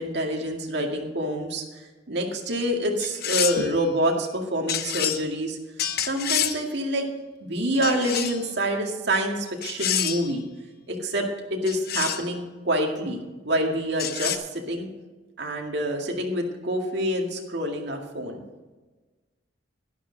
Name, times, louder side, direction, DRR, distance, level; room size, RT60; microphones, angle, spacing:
voice 1, 0.0-1.6 2.1-5.6 6.0-7.1 7.4-10.4 10.9-13.2 13.4-14.9 15.4-18.4, right 1 dB, 65° right, 1 dB, 2.1 m, -27 dB
sound 1, 3.0-3.7 4.7-5.2 5.8-6.6 7.8-8.5 9.6-10.3 11.7-12.3 14.0-14.4, left 9 dB, 60° left, 0.8 m, -28 dB
12.0 x 11.5 x 4.0 m, 1.2 s
head